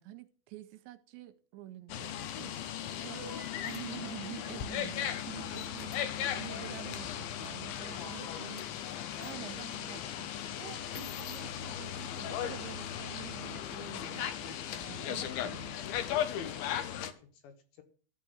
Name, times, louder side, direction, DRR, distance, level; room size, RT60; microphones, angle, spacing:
voice 1, 0.0-3.2 3.6-8.6 9.2-10.3 10.6-15.8, right 15 dB, 80° right, 10 dB, 2.8 m, -48 dB
sound 1, 1.9-17.1, left 10 dB, 90° left, 2.1 m, -37 dB
sound 2, 3.1-3.8 5.9-6.0 8.0-8.6, right 3 dB, 50° right, 2.7 m, -48 dB
voice 2, 7.8-8.7 16.0-17.8, left 9 dB, 75° left, 7 dB, 3.4 m, -52 dB
13.5 x 4.7 x 7.9 m, 0.41 s
omnidirectional pair, 5.4 m